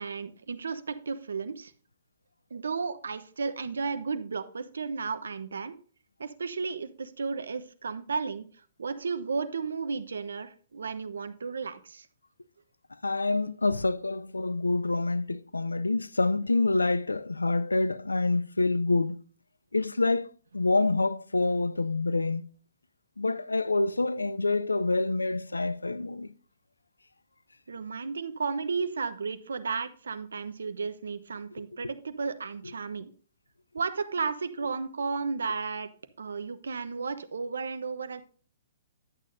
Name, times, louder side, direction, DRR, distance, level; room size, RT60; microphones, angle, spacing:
voice 1, 0.0-1.7 2.5-5.8 6.2-8.5 8.8-12.1 27.7-33.1 33.7-35.9 36.2-38.2, right 5 dB, 75° right, 0.9 m, -33 dB
voice 2, 13.0-19.2 19.7-22.4 23.2-26.3, left 3 dB, 90° left, 0.5 m, -27 dB
11.0 x 8.4 x 2.6 m
figure-of-eight pair, 120°, 0 cm